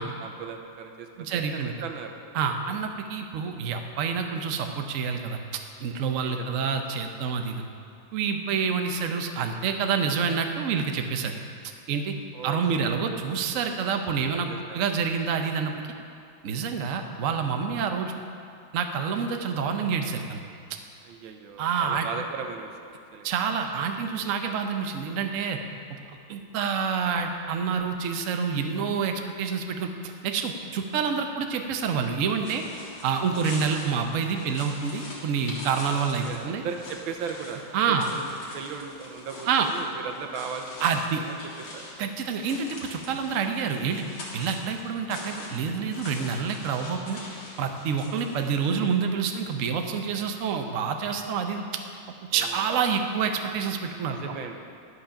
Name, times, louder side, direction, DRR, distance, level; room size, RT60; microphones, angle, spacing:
voice 1, 0.0-2.1 6.2-6.6 12.3-13.1 14.5-14.8 21.0-23.3 35.9-37.6 37.9-38.2 38.5-40.8 41.2-41.4 41.7-41.8 48.1-48.5 52.3-52.7 54.1-54.6, right 6 dB, 80° right, 4 dB, 1.6 m, -38 dB
voice 2, 1.2-1.7 2.3-7.7 8.1-11.4 11.9-12.2 12.4-14.5 14.7-15.9 16.4-18.1 18.7-20.4 21.6-22.1 23.2-25.6 25.9-32.6 33.0-36.6 37.7-38.1 39.5-39.7 40.8-41.2 42.0-44.0 44.3-47.2 47.6-51.8 52.3-54.2, right 6 dB, 60° right, 4 dB, 0.8 m, -28 dB
sound 1, 31.8-49.0, left 2 dB, 65° left, 2.4 m, -43 dB
11.0 x 6.5 x 5.8 m, 2.4 s
omnidirectional pair, 2.2 m